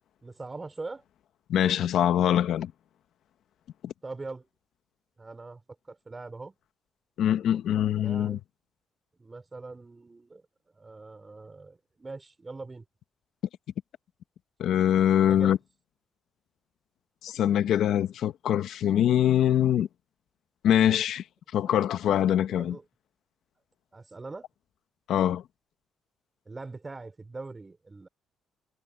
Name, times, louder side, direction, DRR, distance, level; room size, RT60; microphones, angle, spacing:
voice 1, 0.2-1.0 4.0-4.5 5.2-5.6 5.9-6.6 7.9-8.4 9.2-10.4 10.7-12.8 15.2-15.6 21.7-21.8 22.5-22.8 23.9-24.5 26.5-28.1, right 3 dB, 25° right, 5.4 m, -42 dB
voice 2, 1.5-2.7 3.8-3.9 7.2-8.4 14.6-15.6 17.2-19.9 20.6-21.2 21.5-22.8 25.1-25.4, left 10 dB, 75° left, 1.1 m, -23 dB
cardioid pair, 90°, 0 cm